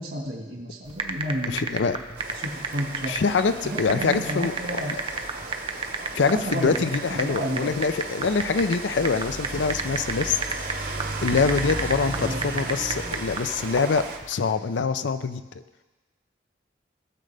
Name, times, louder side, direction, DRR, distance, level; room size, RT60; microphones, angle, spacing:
voice 1, 0.0-3.1 3.6-4.9 6.3-7.8 12.1-12.4, right 1 dB, 70° right, 1 dB, 1.7 m, -32 dB
sound 1, 0.9-14.3, right 4 dB, 30° right, 0.6 m, -32 dB
voice 2, 1.5-2.0 3.1-5.0 6.1-10.4 10.7-15.4, left 5 dB, 80° left, 12 dB, 0.5 m, -25 dB
Rain, 2.2-14.2, right 2 dB, 50° right, 1.0 m, -35 dB
18.0 x 6.5 x 3.4 m, 1.2 s
head